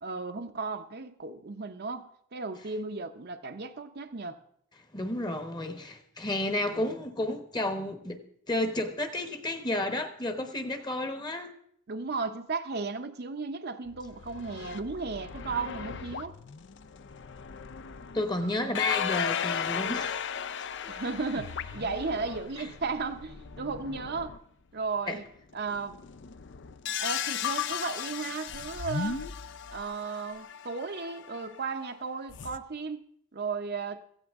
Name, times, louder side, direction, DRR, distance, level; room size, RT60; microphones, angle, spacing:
voice 1, 0.0-4.4 6.6-7.0 11.9-16.4 18.4-18.8 20.9-24.3 24.7-25.2 25.5-25.9 27.0-29.2 29.7-33.0 33.3-34.0, right 4 dB, 45° right, 7 dB, 0.7 m, -35 dB
voice 2, 4.9-8.2 8.5-11.5 18.1-20.2 20.8-20.9 25.1-25.2, left 1 dB, 20° left, 8 dB, 1.0 m, -31 dB
sound 1, 13.9-18.2 18.7-24.4 25.5-32.6, left 7 dB, 55° left, 0.5 m, -36 dB
16.0 x 14.5 x 3.6 m, 0.68 s
head